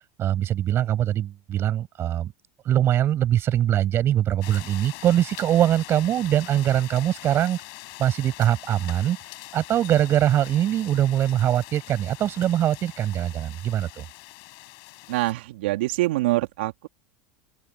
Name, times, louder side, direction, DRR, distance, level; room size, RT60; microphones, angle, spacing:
voice 1, 0.2-2.3 2.7-7.6 8.0-9.2 9.5-14.1, right 11 dB, 40° right, 5.4 m, -22 dB
sound 1, 4.4-15.3, left 40 dB or more, 60° left, 6.5 m, -43 dB
voice 2, 15.1-16.9, right 18 dB, 70° right, 2.2 m, -25 dB
open air
hypercardioid pair, 85°, 6 cm